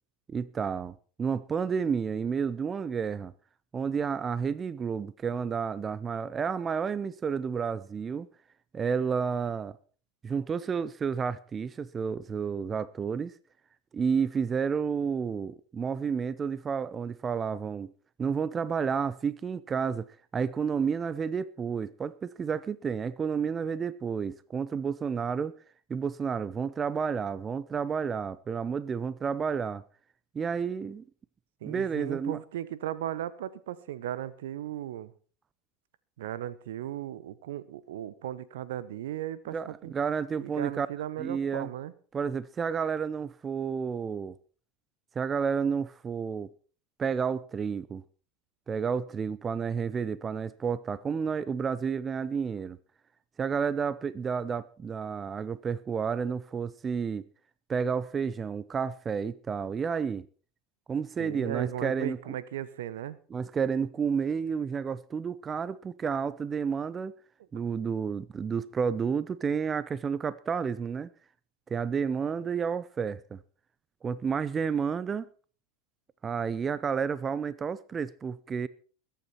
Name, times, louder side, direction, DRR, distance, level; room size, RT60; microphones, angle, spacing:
voice 1, 0.3-3.3 3.7-8.3 8.7-9.8 10.2-13.3 13.9-17.9 18.2-20.1 20.3-25.6 25.9-29.8 30.3-31.0 31.6-32.4 39.5-40.9 41.2-41.7 42.1-44.3 45.2-46.5 47.0-48.0 48.7-52.8 53.4-57.2 57.7-60.3 60.9-62.2 63.3-67.1 67.5-71.1 71.7-73.4 74.0-75.3 76.2-78.7, right 6 dB, 25° right, 0.6 m, -31 dB
voice 2, 31.6-35.1 36.2-39.6 39.8-39.9 40.4-41.9 61.2-63.2, right 12 dB, 70° right, 1.0 m, -36 dB
21.5 x 9.1 x 4.4 m
hypercardioid pair, 85°, 0 cm